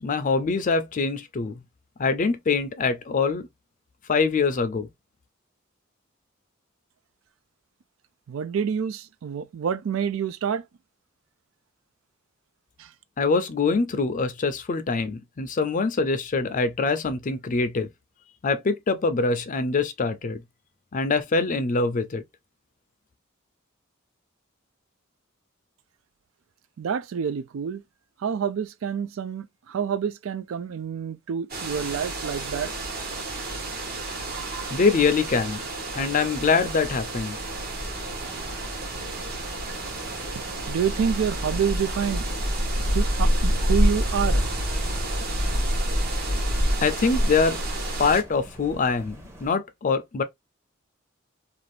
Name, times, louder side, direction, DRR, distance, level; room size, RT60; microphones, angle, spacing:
voice 1, 0.0-1.6 2.0-3.5 4.1-4.9 13.2-17.9 18.4-20.4 20.9-22.2 34.7-35.6 35.9-37.4 46.8-47.6 48.0-49.2 49.4-50.2, left 4 dB, 40° left, 0.4 m, -24 dB
voice 2, 8.3-10.6 12.8-12.9 26.8-27.8 28.2-32.7 39.0-39.2 40.7-42.3 42.9-44.4, right 7 dB, 75° right, 0.4 m, -28 dB
sound 1, 31.5-48.2, equal, 50° right, 1.0 m, -28 dB
sound 2, 37.3-49.5, equal, 15° right, 0.7 m, -42 dB
2.5 x 2.4 x 3.2 m
head